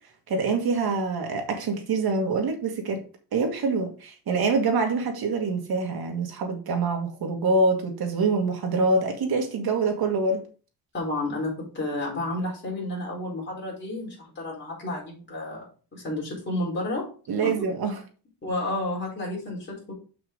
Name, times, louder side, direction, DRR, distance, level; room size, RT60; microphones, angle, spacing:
voice 1, 0.3-3.0 3.3-10.4 17.3-17.9, right 3 dB, 55° right, 3 dB, 2.0 m, -25 dB
voice 2, 10.9-15.6 15.9-17.1 17.4-17.5 18.4-19.9, left 2 dB, 25° left, -3 dB, 4.5 m, -31 dB
6.8 x 5.9 x 4.0 m, 0.37 s
cardioid pair, 160°, 43 cm